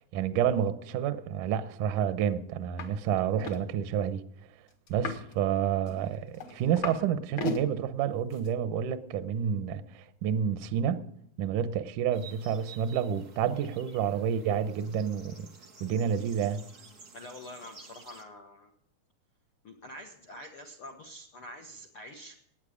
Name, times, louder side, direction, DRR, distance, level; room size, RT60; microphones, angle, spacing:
voice 1, 0.1-4.2 4.9-11.0 11.4-15.5 15.8-16.6, right 8 dB, 75° right, 1.9 m, -29 dB
sound 1, 2.8-2.9 3.2-3.6 4.9-5.3 5.9-7.0 7.3-7.6 8.3-8.5, left 3 dB, 50° left, 1.4 m, -35 dB
sound 2, 12.1-18.2, right 4 dB, 50° right, 1.1 m, -52 dB
voice 2, 17.1-18.7 19.6-22.4, left 1 dB, 75° left, 1.2 m, -46 dB
19.5 x 9.0 x 5.0 m
omnidirectional pair, 4.7 m